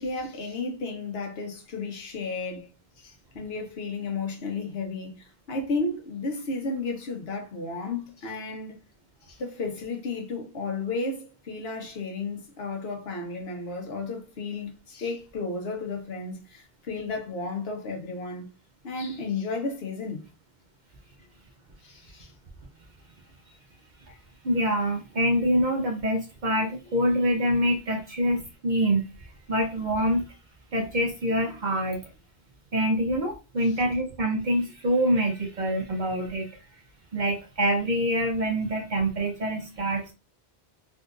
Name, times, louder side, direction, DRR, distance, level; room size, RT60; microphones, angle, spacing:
voice 1, 0.0-2.7 3.0-8.8 9.2-18.5 18.8-20.2 21.8-22.3 24.1-24.2 33.7-33.8, left 3 dB, 65° left, 1.0 m, -33 dB
voice 2, 24.4-30.2 30.7-32.0 32.7-36.5 37.1-40.1, equal, 55° right, 0.6 m, -25 dB
3.6 x 2.4 x 2.4 m
omnidirectional pair, 1.1 m